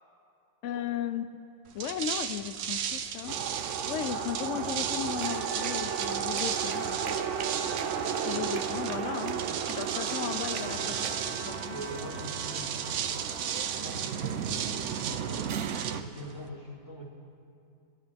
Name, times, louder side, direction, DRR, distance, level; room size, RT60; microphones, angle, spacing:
voice 1, 0.6-1.3 1.7-3.4 3.9-7.2 8.2-11.1 11.4-11.8, left 10 dB, 80° left, 10 dB, 0.6 m, -36 dB
sound 1, 1.7-16.5, right 8 dB, 90° right, 1.4 m, -36 dB
sound 2, 3.3-16.0, right 7 dB, 65° right, 0.7 m, -34 dB
Trumpet, 6.5-13.9, right 2 dB, 20° right, 0.8 m, -46 dB
voice 2, 10.4-12.9 13.7-17.0, equal, 35° left, -6 dB, 3.2 m, -43 dB
28.0 x 12.0 x 3.4 m, 2.5 s
omnidirectional pair, 1.9 m